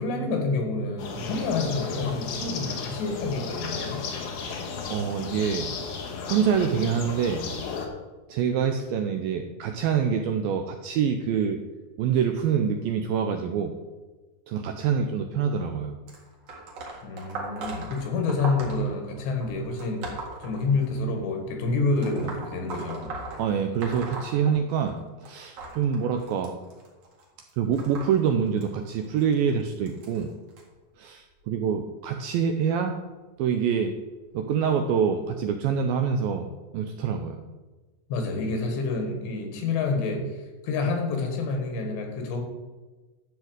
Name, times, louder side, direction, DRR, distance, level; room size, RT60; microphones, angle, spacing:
voice 1, 0.0-4.0 17.0-20.1 20.4-23.1 38.1-42.4, left 3 dB, 85° left, 3 dB, 3.9 m, -28 dB
sound 1, 1.0-7.9, left 5 dB, 70° left, 2.9 m, -34 dB
voice 2, 4.4-5.7 6.3-7.4 8.3-11.6 12.0-13.7 14.5-16.0 23.4-26.6 27.6-30.3 31.0-33.0 33.4-33.9 34.3-36.5 36.7-37.4, right 7 dB, 80° right, 5 dB, 2.1 m, -26 dB
sound 2, 16.1-21.2 22.0-25.0 25.3-30.6 31.4-31.7 32.7-32.8 33.7-33.8 34.5-34.6, right 3 dB, 45° right, 2.4 m, -39 dB
11.5 x 4.5 x 8.0 m, 1.2 s
omnidirectional pair, 4.8 m